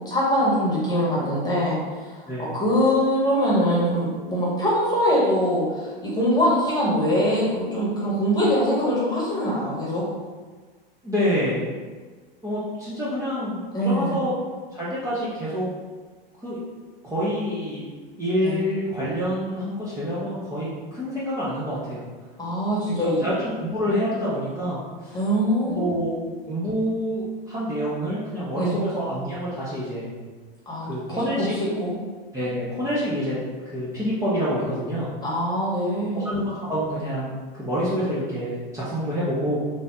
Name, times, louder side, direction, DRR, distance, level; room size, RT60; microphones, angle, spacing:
voice 1, 0.0-2.1 2.4-10.0 13.7-14.2 18.4-18.6 22.4-23.3 25.1-25.9 28.5-28.8 30.7-30.9 31.8-31.9 35.2-36.3, equal, 15° left, -6 dB, 1.4 m, -23 dB
voice 2, 11.0-11.6 12.4-14.3 14.7-15.7 16.4-16.6 17.0-17.9 18.2-22.0 22.9-25.2 25.6-26.1 26.5-30.1 30.8-31.5 32.3-33.4 33.7-35.1 36.1-39.6, equal, 10° right, -10 dB, 0.9 m, -27 dB
3.7 x 2.6 x 3.6 m, 1.4 s
hypercardioid pair, 95°, 29 cm